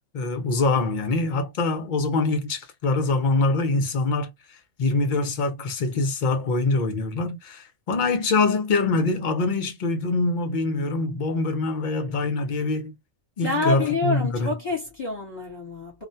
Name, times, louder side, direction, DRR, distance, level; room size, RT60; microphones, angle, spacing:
voice 1, 0.1-4.3 4.8-12.9 13.4-14.5, left 3 dB, 50° left, 0.6 m, -24 dB
voice 2, 13.4-16.0, left 2 dB, 35° left, 1.1 m, -27 dB
2.4 x 2.1 x 2.6 m
omnidirectional pair, 1.4 m